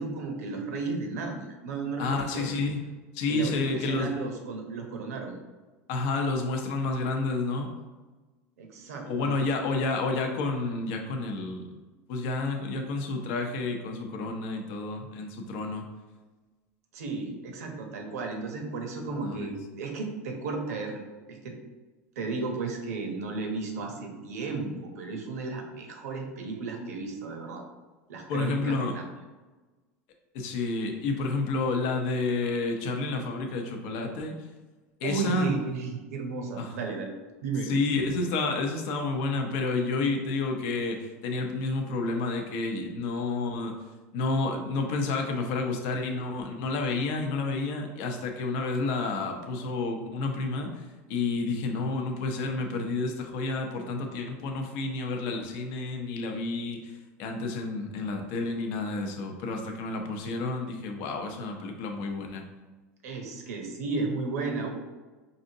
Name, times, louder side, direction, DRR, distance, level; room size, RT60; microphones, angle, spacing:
voice 1, 0.0-2.5 3.3-5.4 8.6-9.5 16.9-21.0 21.3-21.6 22.2-27.6 28.1-29.0 35.0-37.1 37.4-37.7 63.0-64.7, right 3 dB, 80° right, 3 dB, 0.8 m, -34 dB
voice 2, 2.0-2.8 3.1-4.1 5.9-7.7 9.0-11.7 12.1-15.8 19.2-19.5 28.3-29.0 30.3-34.3 35.0-35.5 36.6-36.8 37.7-43.8 44.1-50.7 51.1-56.9 57.2-62.4, left 3 dB, 65° left, 3 dB, 0.7 m, -30 dB
4.9 x 2.6 x 2.7 m, 1.3 s
hypercardioid pair, 100°, 8 cm